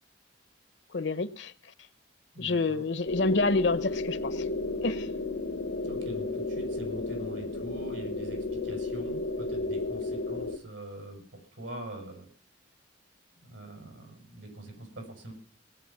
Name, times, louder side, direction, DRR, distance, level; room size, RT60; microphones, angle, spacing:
voice 1, 0.9-1.5 2.4-4.4 4.8-5.1, left 3 dB, 70° left, 0.9 m, -28 dB
voice 2, 2.3-2.9 5.8-12.3 13.4-15.3, right 1 dB, 85° right, 7.0 m, -43 dB
sound 1, 3.1-10.6, left 2 dB, 85° left, 1.2 m, -33 dB
19.5 x 9.4 x 5.9 m
head